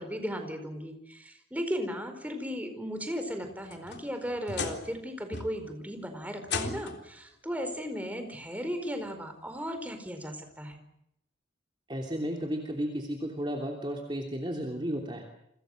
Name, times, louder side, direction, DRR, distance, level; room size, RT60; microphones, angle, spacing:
voice 1, 0.0-10.8, equal, 10° right, 6 dB, 4.5 m, -36 dB
sound 1, 3.4-5.0 5.3-5.8 6.4-7.1 8.3-8.4 9.0-9.1 10.7-10.8, left 4 dB, 60° left, 3.7 m, -37 dB
voice 2, 11.9-15.2, equal, 25° right, 1 dB, 3.1 m, -33 dB
29.5 x 25.5 x 6.6 m, 0.78 s
head